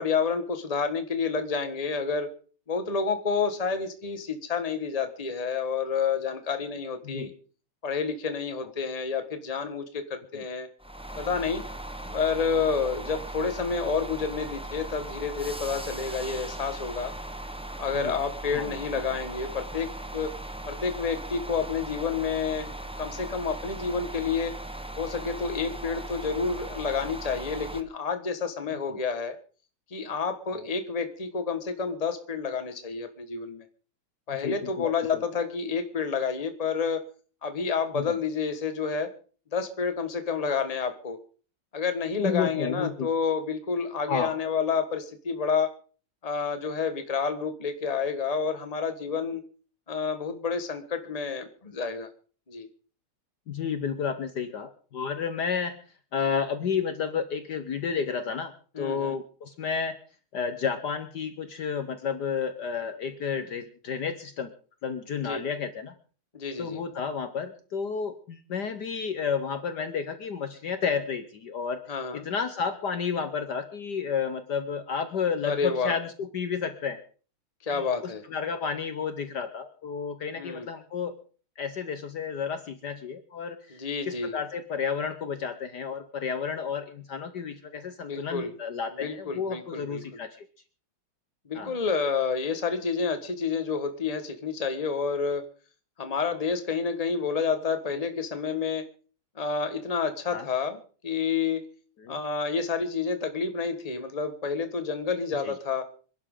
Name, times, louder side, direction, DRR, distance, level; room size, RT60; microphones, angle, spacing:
voice 1, 0.0-2.3 2.7-7.3 7.8-10.7 11.2-11.7 12.1-17.1 17.8-20.3 20.7-22.7 23.0-24.5 25.0-29.4 29.9-33.6 34.3-37.0 37.4-39.1 39.5-41.2 41.7-45.7 46.2-49.4 49.9-52.1 52.5-52.7 58.7-59.2 65.1-65.4 66.3-66.8 71.9-72.3 75.4-76.0 77.6-78.2 80.3-80.7 83.7-84.4 88.0-88.5 89.0-90.2 91.4-95.5 96.0-98.8 99.3-101.7 102.1-105.8, left 5 dB, 20° left, 8 dB, 1.4 m, -29 dB
sound 1, 10.8-27.8, right 1 dB, 5° right, 0.5 m, -38 dB
voice 2, 34.3-35.2 37.9-38.1 42.2-43.1 44.1-44.3 53.5-55.8 56.1-60.0 60.3-64.5 64.8-65.9 66.6-71.8 72.1-77.0 77.7-81.2 81.6-90.4 91.5-91.7 100.3-100.5 102.0-102.1 105.4-105.5, left 6 dB, 60° left, 9 dB, 1.5 m, -31 dB
26.5 x 11.5 x 3.8 m, 0.41 s
omnidirectional pair, 2.3 m